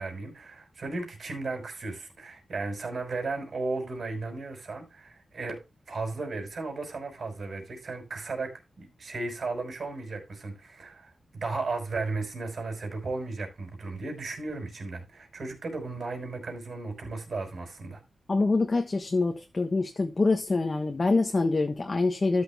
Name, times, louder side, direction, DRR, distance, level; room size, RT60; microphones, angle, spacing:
voice 1, 0.0-18.0, right 3 dB, 60° right, 5.6 m, -35 dB
voice 2, 18.3-22.4, left 3 dB, 35° left, 1.3 m, -25 dB
13.5 x 6.3 x 3.5 m
wide cardioid pair, 90°, 0 cm